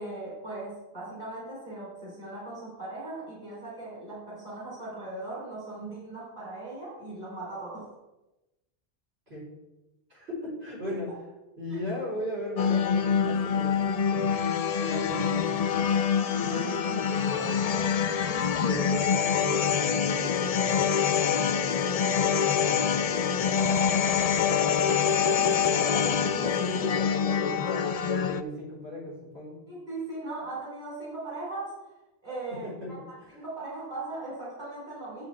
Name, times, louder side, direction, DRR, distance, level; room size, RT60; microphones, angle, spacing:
voice 1, 0.0-7.9 10.9-11.0 11.7-12.0 24.4-25.7 29.7-31.8 32.2-33.0 33.3-35.3, right 2 dB, 50° right, -7 dB, 3.5 m, -39 dB
voice 2, 10.1-11.1 11.6-14.4 14.7-15.9 16.3-17.9 18.6-24.0 25.6-25.8 26.2-29.6 32.6-32.9 33.2-33.4, left 1 dB, 80° right, -6 dB, 4.1 m, -37 dB
sound 1, 12.6-28.4, left 7 dB, 55° left, 0.4 m, -25 dB
11.5 x 7.5 x 3.2 m, 1.0 s
omnidirectional pair, 1.0 m